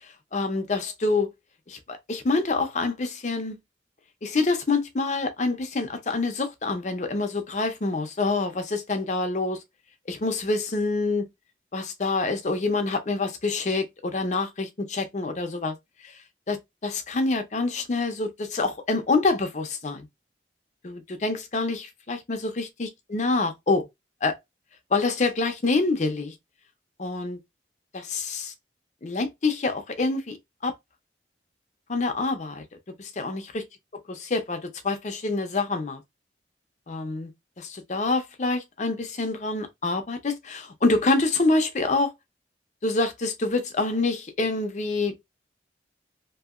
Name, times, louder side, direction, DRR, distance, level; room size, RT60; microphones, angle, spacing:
voice 1, 0.3-1.3 1.7-3.6 4.2-9.6 10.1-11.2 11.7-15.8 16.0-16.1 16.5-20.1 20.8-23.9 24.2-24.4 24.9-26.3 27.0-27.4 27.9-28.5 29.0-30.4 30.6-30.7 31.9-32.6 33.0-33.6 34.3-36.0 36.9-37.3 37.6-42.1 42.8-45.1, left 3 dB, 40° left, 0.6 m, -26 dB
2.8 x 2.7 x 2.4 m
head